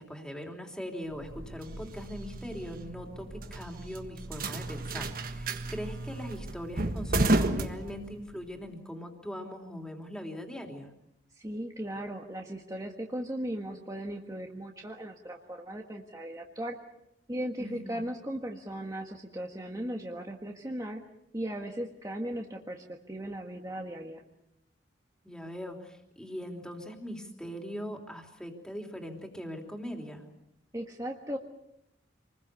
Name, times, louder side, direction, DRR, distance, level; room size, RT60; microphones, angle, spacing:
voice 1, 0.0-10.9 17.6-18.1 25.2-30.2, equal, 5° left, 2 dB, 3.4 m, -41 dB
sound 1, 1.1-8.5, right 2 dB, 50° right, 1.5 m, -33 dB
voice 2, 11.4-16.8 17.3-21.0 21.3-24.2 30.7-31.4, right 1 dB, 20° right, 1 dB, 1.6 m, -37 dB
27.5 x 21.0 x 7.0 m, 0.82 s
head